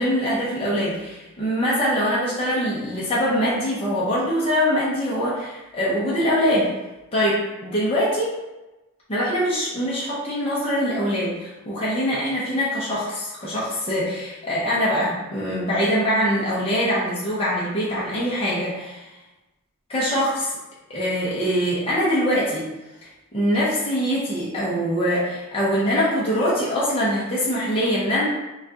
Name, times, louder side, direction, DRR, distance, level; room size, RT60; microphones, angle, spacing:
voice 1, 0.0-6.7 7.1-8.3 9.1-19.1 19.9-20.5 20.9-22.6 23.3-28.2, equal, 25° left, -8 dB, 0.8 m, -23 dB
5.8 x 2.4 x 2.8 m, 1.0 s
head